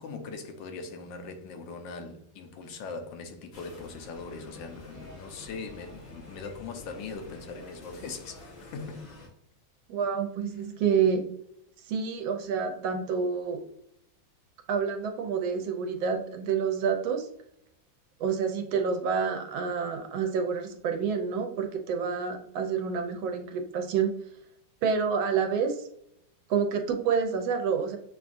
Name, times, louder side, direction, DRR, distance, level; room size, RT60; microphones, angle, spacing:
voice 1, 0.0-9.2, left 4 dB, 75° left, 1.3 m, -41 dB
sound 1, 3.5-9.3, left 2 dB, 55° left, 0.7 m, -48 dB
voice 2, 9.9-11.3 11.9-13.6 14.7-17.3 18.2-24.1 24.8-25.8 26.5-28.0, right 6 dB, 85° right, 1.5 m, -28 dB
7.0 x 2.4 x 2.5 m
omnidirectional pair, 2.1 m